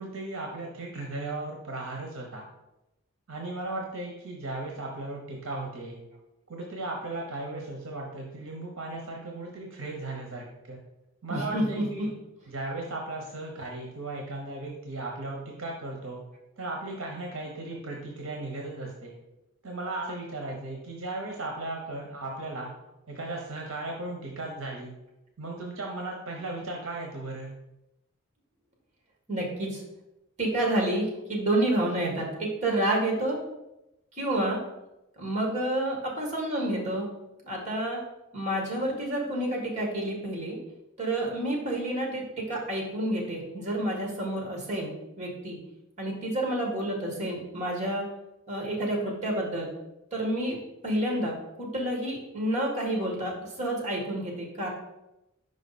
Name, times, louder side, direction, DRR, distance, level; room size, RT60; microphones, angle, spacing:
voice 1, 0.0-2.5 3.3-6.0 6.5-10.8 11.2-12.1 12.5-16.2 16.6-19.1 19.6-22.7 23.1-24.9 25.4-27.5, right 2 dB, 65° right, 0 dB, 1.0 m, -36 dB
voice 2, 11.3-12.1 29.3-29.8 30.4-33.4 34.1-34.6 35.2-37.1 37.4-38.0 38.3-40.6 41.0-45.6 46.0-48.0 48.5-49.7 50.1-50.5 50.8-53.3 53.6-54.7, right 1 dB, 35° right, -1 dB, 1.7 m, -29 dB
5.3 x 4.9 x 4.1 m, 0.92 s
head